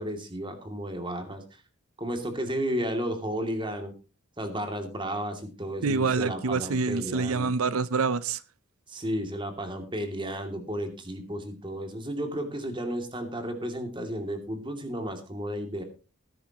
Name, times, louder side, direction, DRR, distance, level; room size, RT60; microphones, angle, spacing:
voice 1, 0.0-1.4 2.0-3.9 4.4-7.5 8.9-15.8, equal, 25° right, 6 dB, 2.5 m, -33 dB
voice 2, 5.8-8.4, right 4 dB, 90° right, 16 dB, 0.6 m, -26 dB
19.0 x 10.5 x 3.0 m, 0.33 s
head